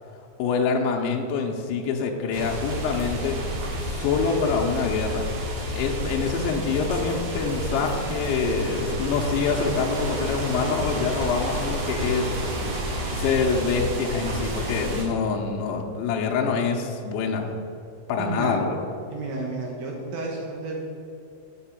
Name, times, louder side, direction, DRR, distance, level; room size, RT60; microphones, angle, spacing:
voice 1, 0.4-3.4 3.8-5.3 5.7-12.3 13.1-17.5 18.1-18.8, left 5 dB, 80° left, 0 dB, 3.0 m, -25 dB
sound 1, 2.3-15.0, equal, 60° right, 1.8 m, -30 dB
voice 2, 18.2-18.6 19.1-20.8, right 3 dB, 75° right, -1 dB, 2.1 m, -31 dB
7.3 x 7.0 x 7.3 m, 2.6 s
omnidirectional pair, 5.6 m